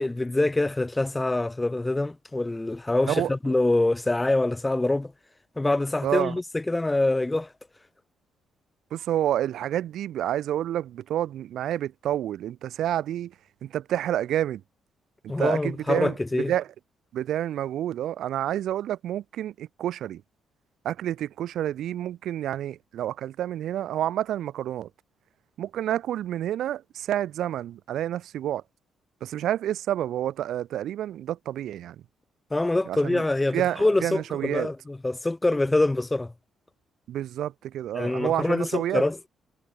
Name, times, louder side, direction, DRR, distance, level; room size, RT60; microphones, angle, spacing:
voice 1, 0.0-5.1 5.6-7.5 15.3-16.5 32.5-36.3 37.9-39.2, left 2 dB, 15° left, 0.5 m, -25 dB
voice 2, 6.0-6.4 8.9-13.3 13.6-14.6 15.2-16.7 17.1-20.2 20.8-24.9 25.6-28.6 29.2-32.0 32.9-33.2 33.5-34.7 37.1-39.0, right 11 dB, 75° right, 0.8 m, -29 dB
cardioid pair, 90°, 0 cm